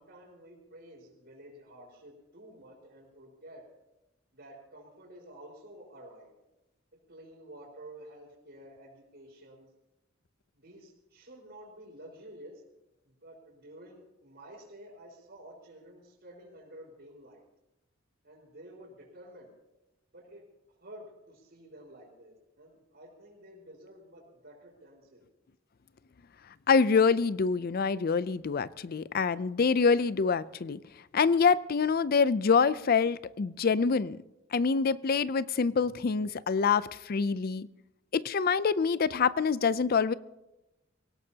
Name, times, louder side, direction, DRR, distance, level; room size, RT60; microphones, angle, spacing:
voice 1, 0.0-3.6 4.3-6.3 7.1-9.7 10.5-12.6 13.0-17.4 18.2-19.5 20.1-20.4 20.8-25.2, right 1 dB, 60° right, -8 dB, 4.9 m, -51 dB
voice 2, 26.7-30.8 31.1-34.2 34.5-37.7 38.1-40.1, left 5 dB, 50° left, 17 dB, 0.5 m, -26 dB
25.5 x 17.5 x 2.8 m, 0.96 s
head